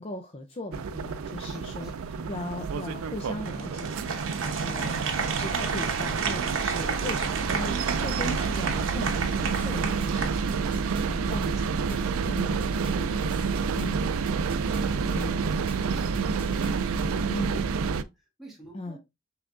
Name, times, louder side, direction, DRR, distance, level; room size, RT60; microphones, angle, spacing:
voice 1, 0.0-1.9 2.3-4.0 4.4-14.1 15.2-15.4 17.3-17.5 18.7-19.0, left 1 dB, 30° left, 0.5 m, -38 dB
sound 1, 0.7-18.0, right 5 dB, 85° right, 0.4 m, -29 dB
voice 2, 1.4-2.2 4.7-5.0 11.2-11.7 13.5-14.4 14.8-19.0, right 1 dB, ahead, 2.0 m, -48 dB
Applause, 3.4-11.0, right 5 dB, 70° right, 1.0 m, -32 dB
sound 2, 9.5-17.1, right 1 dB, 25° right, 0.8 m, -44 dB
5.9 x 3.3 x 2.5 m
head